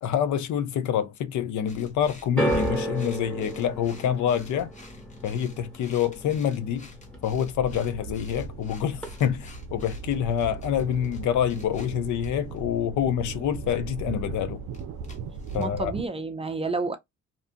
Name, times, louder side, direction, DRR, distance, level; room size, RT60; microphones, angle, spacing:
voice 1, 0.0-4.7 5.2-6.9 7.2-14.6 15.5-15.9, left 9 dB, 75° left, 0.6 m, -27 dB
sound 1, 1.7-16.1, left 2 dB, 25° left, 1.0 m, -49 dB
sound 2, 2.4-8.6 8.9-9.6 10.3-10.4, right 1 dB, 5° left, 1.1 m, -33 dB
sound 3, 7.4-16.0, right 5 dB, 70° right, 0.5 m, -38 dB
voice 2, 15.6-17.0, right 3 dB, 20° right, 0.4 m, -30 dB
2.6 x 2.4 x 2.5 m
cardioid pair, 90°, 30 cm